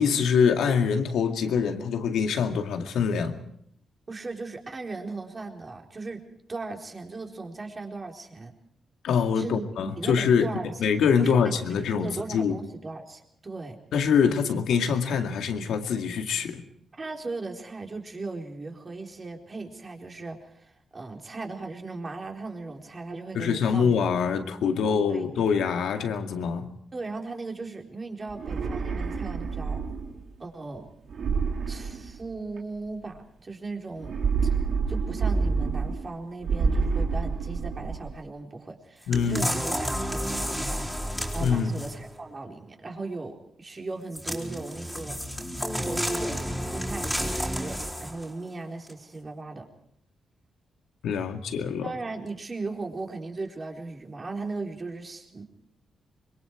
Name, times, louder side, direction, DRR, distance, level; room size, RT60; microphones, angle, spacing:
voice 1, 0.0-3.4 9.0-10.5 10.8-12.6 13.9-16.6 23.3-26.7 39.1-39.5 41.4-41.7 51.0-51.9, left 6 dB, 80° left, 5 dB, 2.2 m, -24 dB
voice 2, 4.1-6.2 6.5-8.5 9.3-9.6 10.0-10.7 11.2-11.6 12.0-13.8 17.0-23.9 24.6-25.6 26.9-29.8 30.4-30.9 31.7-34.1 34.4-34.5 34.9-49.7 51.8-55.4, right 3 dB, 35° right, 2 dB, 4.1 m, -37 dB
sound 1, 28.3-30.2 31.1-32.6 34.0-36.1 36.4-38.1, right 5 dB, 70° right, 3.3 m, -28 dB
sound 2, 39.1-42.1 44.1-48.3 48.9-49.0, equal, 5° left, 4.3 m, -31 dB
25.5 x 22.5 x 4.7 m, 0.70 s
cardioid pair, 80°, 0 cm